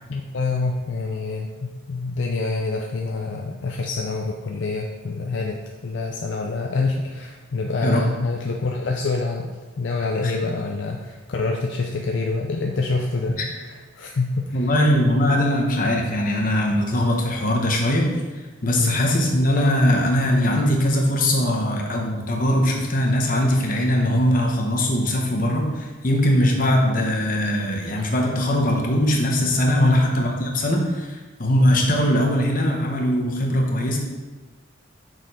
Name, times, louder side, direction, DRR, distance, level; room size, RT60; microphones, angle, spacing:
voice 1, 0.1-5.6 5.8-9.5 9.8-14.7 18.8-19.0 29.8-30.1, left 3 dB, 65° left, 1 dB, 0.5 m, -26 dB
voice 2, 14.5-18.1 18.6-34.0, left 1 dB, 40° left, 0 dB, 1.0 m, -21 dB
6.3 x 4.5 x 4.9 m, 1.3 s
head